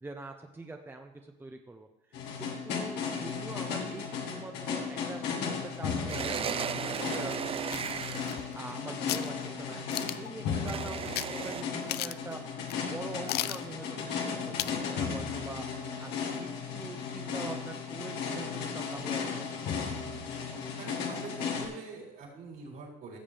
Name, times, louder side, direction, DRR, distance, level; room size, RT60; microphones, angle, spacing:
voice 1, 0.0-7.8 8.6-12.6 12.9-19.7, right 2 dB, 10° right, 4 dB, 0.8 m, -44 dB
sound 1, 2.1-21.7, left 6 dB, 90° left, 1.9 m, -35 dB
sound 2, 6.1-8.5 10.7-11.6, right 8 dB, 35° right, 0.4 m, -35 dB
sound 3, 7.7-8.7 9.1-9.3 9.9-10.3 11.1-11.3 11.6-11.7 11.9-12.3 12.7-12.8 13.3-13.6 14.6-14.8 15.2-15.3, left 15 dB, 70° left, 0.4 m, -35 dB
voice 2, 20.8-23.2, right 4 dB, 65° right, -2 dB, 4.3 m, -45 dB
15.5 x 7.3 x 3.5 m, 1.0 s
cardioid pair, 110°, 17 cm